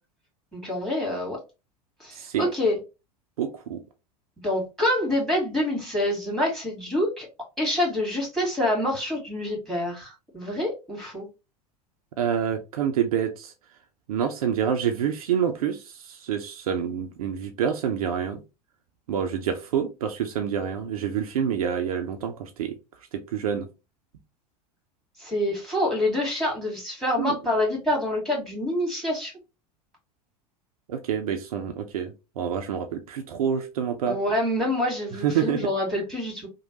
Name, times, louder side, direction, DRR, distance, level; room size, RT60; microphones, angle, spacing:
voice 1, 0.5-1.4 2.0-2.8 4.4-7.3 7.6-11.3 25.2-29.3 34.1-36.5, left 1 dB, ahead, 1.6 m, -26 dB
voice 2, 2.1-2.5 3.4-3.8 12.2-13.5 14.1-18.4 19.1-22.8 23.1-23.7 27.2-27.4 30.9-34.2 35.2-35.6, right 8 dB, 60° right, 0.4 m, -27 dB
3.0 x 2.1 x 2.8 m
figure-of-eight pair, 80°, 21 cm